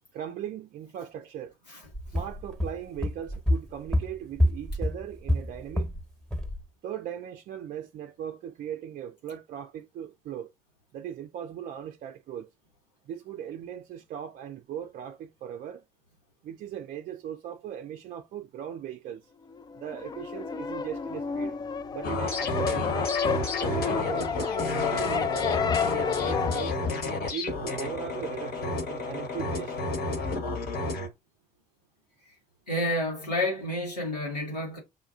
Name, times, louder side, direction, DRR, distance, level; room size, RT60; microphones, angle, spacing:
voice 1, 0.1-1.5 2.1-5.9 6.8-10.5 10.9-12.5 13.1-15.8 16.4-19.3 19.8-21.6 21.9-23.1 23.6-26.8 27.3-29.8, right 9 dB, 40° right, 0.5 m, -38 dB
sound 1, 1.9-6.0 6.3-6.6, left 1 dB, ahead, 1.1 m, -28 dB
sound 2, 19.5-26.6, left 6 dB, 20° left, 0.3 m, -30 dB
sound 3, 22.0-31.1, left 2 dB, 50° left, 1.2 m, -31 dB
voice 2, 32.7-34.8, left 1 dB, 85° left, 1.0 m, -29 dB
6.8 x 2.3 x 2.4 m
figure-of-eight pair, 55°, 21 cm